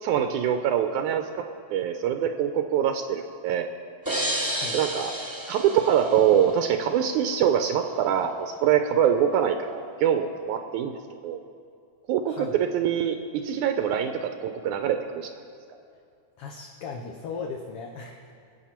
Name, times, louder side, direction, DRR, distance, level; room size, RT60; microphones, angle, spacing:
voice 1, 0.0-3.7 4.7-5.1 5.5-11.4 12.1-15.3, right 9 dB, 80° right, 7 dB, 2.0 m, -24 dB
sound 1, 4.1-6.8, right 1 dB, 10° right, 1.8 m, -31 dB
voice 2, 12.3-12.6 16.4-18.3, left 4 dB, 70° left, 1 dB, 1.4 m, -37 dB
23.0 x 8.8 x 4.4 m, 2.4 s
omnidirectional pair, 3.6 m